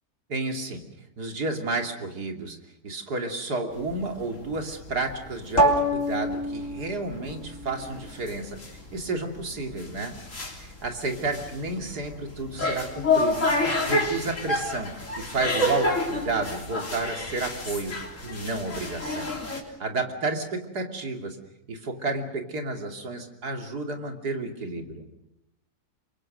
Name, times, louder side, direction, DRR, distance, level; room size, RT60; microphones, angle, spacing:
voice 1, 0.3-0.8 1.2-2.6 2.8-10.2 10.6-17.9 18.2-19.3 19.8-21.4 21.7-25.1, right 3 dB, 80° right, 4 dB, 3.3 m, -31 dB
sound 1, 3.8-19.6, left 1 dB, 50° left, 3.8 m, -29 dB
28.5 x 24.0 x 6.6 m, 0.87 s
omnidirectional pair, 1.7 m